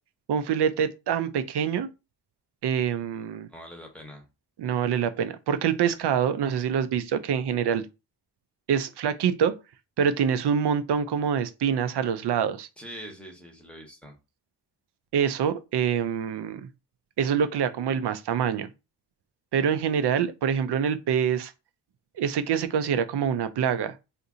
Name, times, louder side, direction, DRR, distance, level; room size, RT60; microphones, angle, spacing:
voice 1, 0.3-1.9 2.6-3.5 4.6-7.9 8.7-9.5 10.0-12.7 15.1-16.7 17.2-18.7 19.5-21.5 22.2-23.9, right 7 dB, 75° right, 0.5 m, -25 dB
voice 2, 3.5-4.3 12.8-14.1, equal, 5° left, 0.8 m, -43 dB
2.7 x 2.6 x 3.7 m
wide cardioid pair, 160°, 41 cm